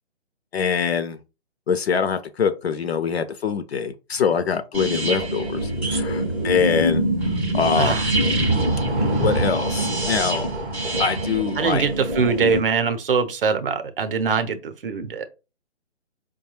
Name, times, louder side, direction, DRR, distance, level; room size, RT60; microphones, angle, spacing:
voice 1, 0.5-1.2 1.7-7.0 7.5-8.1 9.2-10.5 11.0-11.9, left 6 dB, 60° left, 0.6 m, -24 dB
sound 1, 4.7-12.6, right 1 dB, 10° right, 0.5 m, -24 dB
voice 2, 7.8-8.1 11.6-15.3, right 5 dB, 50° right, 0.7 m, -23 dB
4.6 x 2.2 x 2.9 m
figure-of-eight pair, 145°, 36 cm